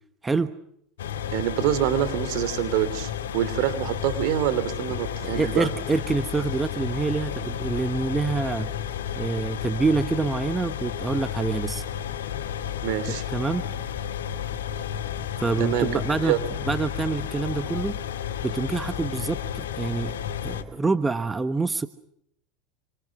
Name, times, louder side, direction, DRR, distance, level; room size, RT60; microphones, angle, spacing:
sound 1, 1.0-20.6, left 9 dB, 80° left, 2.4 m, -32 dB
voice 1, 1.3-5.7 12.8-13.2 15.6-16.4, right 12 dB, 60° right, 11 dB, 3.1 m, -26 dB
voice 2, 5.2-8.7 9.1-11.8 13.1-13.6 15.4-16.3 16.6-18.0 18.4-20.2 20.4-21.9, right 4 dB, 15° right, 11 dB, 1.2 m, -26 dB
27.5 x 25.5 x 6.1 m, 0.74 s
hypercardioid pair, 85°, 0 cm